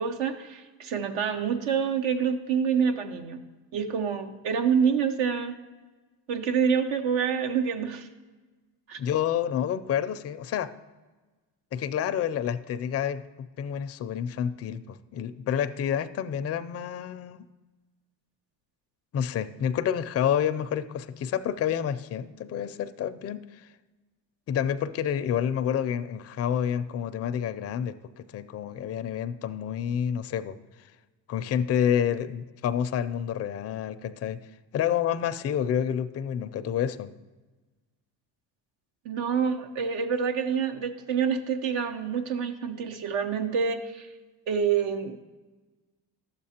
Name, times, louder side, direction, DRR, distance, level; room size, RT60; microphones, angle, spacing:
voice 1, 0.0-3.4 3.7-5.6 6.3-8.1 8.9-9.0 39.0-44.1 44.5-45.2, right 6 dB, 70° right, 7 dB, 0.9 m, -27 dB
voice 2, 9.0-10.7 11.7-17.4 19.1-23.7 24.5-30.6 31.3-34.4 34.7-37.1, left 9 dB, 35° left, 10 dB, 0.4 m, -29 dB
12.0 x 7.5 x 2.8 m, 1.3 s
supercardioid pair, 75°, 46 cm